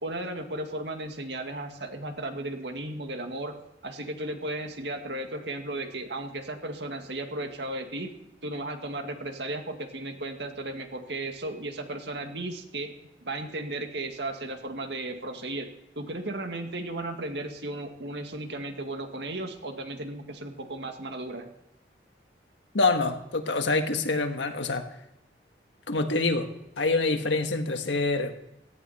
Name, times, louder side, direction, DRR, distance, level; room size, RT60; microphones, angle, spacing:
voice 1, 0.0-3.5 3.8-8.1 8.4-12.9 13.2-15.7 16.0-21.5, right 2 dB, 75° right, 5 dB, 2.0 m, -35 dB
voice 2, 22.7-24.9 25.9-28.4, left 3 dB, 85° left, 6 dB, 1.6 m, -26 dB
17.5 x 15.0 x 4.3 m, 0.87 s
head